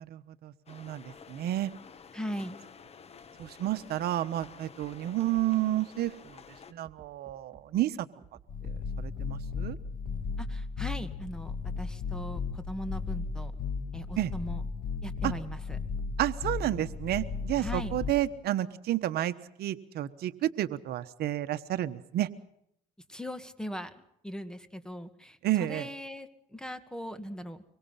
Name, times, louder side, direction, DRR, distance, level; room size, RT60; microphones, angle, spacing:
voice 1, 0.0-1.7 3.4-6.4 6.7-8.0 8.6-9.8 14.2-14.3 15.2-15.3 16.2-22.3 25.4-25.9, right 14 dB, 70° right, 12 dB, 1.2 m, -31 dB
sound 1, 0.7-6.7, left 6 dB, 35° left, 1.8 m, -51 dB
voice 2, 2.1-2.6 10.4-13.5 13.9-14.6 15.0-15.8 17.6-17.9 23.1-23.9 24.2-27.6, equal, 5° left, 10 dB, 2.1 m, -39 dB
sound 2, 4.4-4.5 4.8-4.9 5.3-5.4 6.8-7.6 8.2-8.4 8.8-8.9 9.2-9.3 9.6-9.7 11.2-11.4 11.8-11.9 13.1-13.2 13.5-13.6 14.1-14.2 15.6-16.4 16.9-17.2 17.5-17.6 17.9-18.0 18.3-18.4, right 5 dB, 30° right, 3.2 m, -55 dB
sound 3, 8.5-18.1, left 5 dB, 55° left, 2.7 m, -35 dB
24.5 x 23.5 x 5.8 m, 0.76 s
cardioid pair, 110°, 17 cm